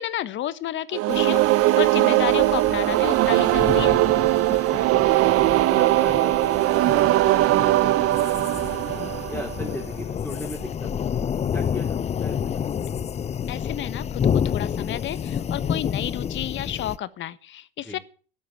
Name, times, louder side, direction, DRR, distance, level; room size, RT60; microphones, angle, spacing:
voice 1, 0.0-1.4 1.8-4.0 13.5-18.0, left 12 dB, 40° left, 1.3 m, -31 dB
sound 1, 0.9-9.8, right 17 dB, 50° right, 1.1 m, -20 dB
sound 2, 1.1-17.0, left 8 dB, 20° left, 0.6 m, -30 dB
voice 2, 4.7-5.3 5.6-8.8 9.3-11.1 11.5-12.6 17.8-18.0, equal, 5° left, 4.5 m, -37 dB
13.0 x 9.3 x 9.2 m
hypercardioid pair, 95°, 29 cm